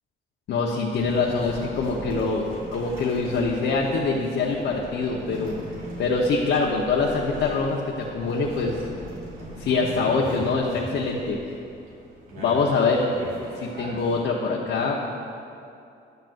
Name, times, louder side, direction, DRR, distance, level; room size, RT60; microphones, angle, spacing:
voice 1, 0.5-5.6 6.0-8.7 9.6-11.4 12.4-13.0 13.6-15.0, left 4 dB, 70° left, -3 dB, 1.0 m, -24 dB
sound 1, 0.9-14.2, equal, 80° right, 2.4 m, -40 dB
13.5 x 10.5 x 2.6 m, 2.5 s
cardioid pair, 90°, 20 cm